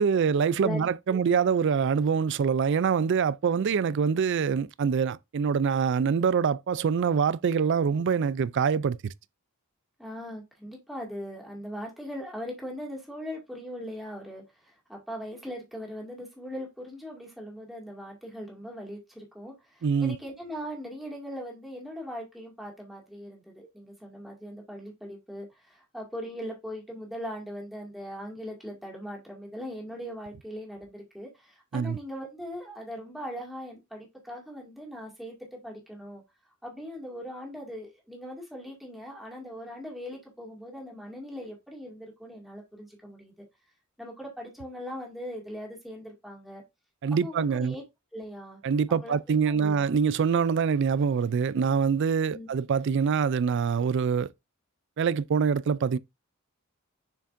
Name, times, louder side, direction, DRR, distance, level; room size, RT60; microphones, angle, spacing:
voice 1, 0.0-9.1 19.8-20.2 31.7-32.0 47.0-47.7 48.6-54.3 55.0-56.0, right 6 dB, 55° right, 0.4 m, -25 dB
voice 2, 0.6-1.2 10.0-36.2 36.6-43.4 44.0-46.6 47.2-47.8 48.1-48.6 48.9-49.9 52.3-52.5, equal, ahead, 2.1 m, -40 dB
7.0 x 5.8 x 2.6 m
head